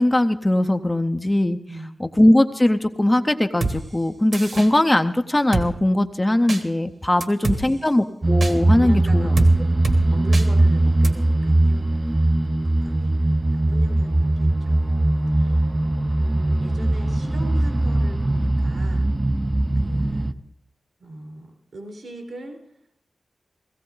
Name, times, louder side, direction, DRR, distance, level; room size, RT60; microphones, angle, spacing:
voice 1, 0.0-1.6 2.0-9.3, left 1 dB, 15° left, 7 dB, 0.6 m, -20 dB
voice 2, 1.6-2.0 7.1-8.0 8.7-12.3 12.6-15.0 15.3-15.8 16.2-19.1 19.8-20.4 21.0-22.6, right 1 dB, 70° right, 2 dB, 4.3 m, -39 dB
Drum kit, 3.6-3.8 4.3-4.7 5.5-5.7 6.5-6.6 7.2-7.6 8.4-8.5 9.4-9.5 9.8-10.0 10.3-10.5 11.0-11.1, right 3 dB, 50° right, 1.5 m, -25 dB
sound 1, 8.2-20.3, right 1 dB, 25° right, 0.5 m, -20 dB
17.0 x 16.0 x 3.9 m, 0.77 s
wide cardioid pair, 100°, 0 cm